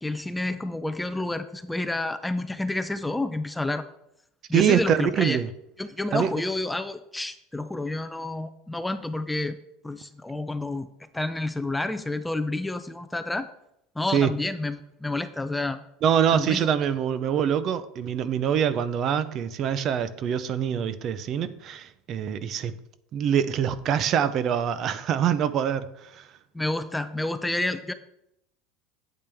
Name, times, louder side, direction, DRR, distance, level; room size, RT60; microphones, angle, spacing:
voice 1, 0.0-3.9 4.5-5.4 5.8-9.6 9.8-10.9 11.1-13.5 14.0-15.8 16.3-16.7 26.5-27.9, left 2 dB, 5° left, 11 dB, 0.4 m, -29 dB
voice 2, 4.5-5.5 6.1-6.3 14.1-14.3 16.0-22.7 23.1-26.3, right 8 dB, 40° right, 14 dB, 0.6 m, -24 dB
8.6 x 8.5 x 3.5 m, 0.80 s
supercardioid pair, 135°, 0 cm